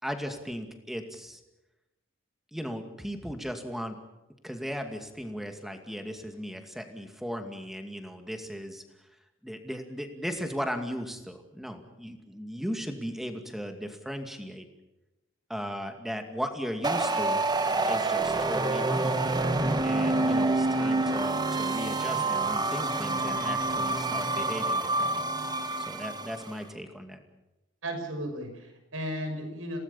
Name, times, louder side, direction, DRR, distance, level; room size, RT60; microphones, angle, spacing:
voice 1, 0.0-1.4 2.5-4.0 4.4-8.8 9.4-14.7 15.5-17.4 17.9-19.2 19.8-25.3 25.8-27.2, equal, ahead, 5 dB, 2.3 m, -37 dB
sound 1, 16.8-26.5, right 2 dB, 20° right, 1.3 m, -27 dB
voice 2, 27.8-29.8, equal, 85° right, 5 dB, 6.1 m, -35 dB
27.5 x 18.5 x 7.2 m, 0.98 s
head